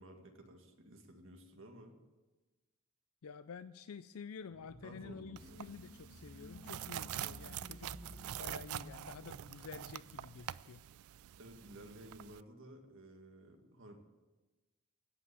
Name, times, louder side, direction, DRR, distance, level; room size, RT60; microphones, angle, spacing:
voice 1, 0.0-2.0 4.8-5.7 11.4-14.0, right 1 dB, 60° right, 3 dB, 2.0 m, -54 dB
voice 2, 3.2-7.9 8.3-10.8, left 6 dB, 75° left, 13 dB, 0.4 m, -50 dB
sound 1, 4.5-10.9, left 1 dB, 50° left, 3.1 m, -55 dB
sound 2, 5.4-12.4, right 11 dB, 80° right, 0.4 m, -46 dB
17.0 x 5.9 x 9.5 m, 1.2 s
head